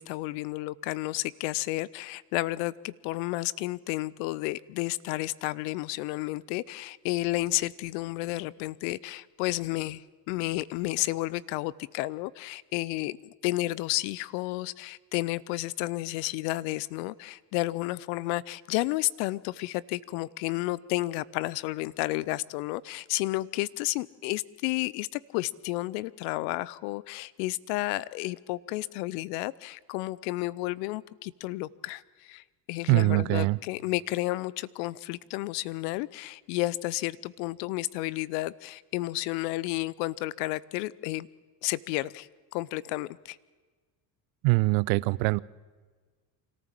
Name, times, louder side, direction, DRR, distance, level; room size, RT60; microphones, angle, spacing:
voice 1, 0.0-32.4 32.7-41.3 41.6-42.3 42.5-43.4, left 19 dB, 70° left, 21 dB, 0.7 m, -32 dB
voice 2, 32.9-33.6 44.4-45.4, right 23 dB, 65° right, 22 dB, 0.6 m, -23 dB
25.0 x 14.0 x 7.5 m, 1.4 s
hypercardioid pair, 65°, 50 cm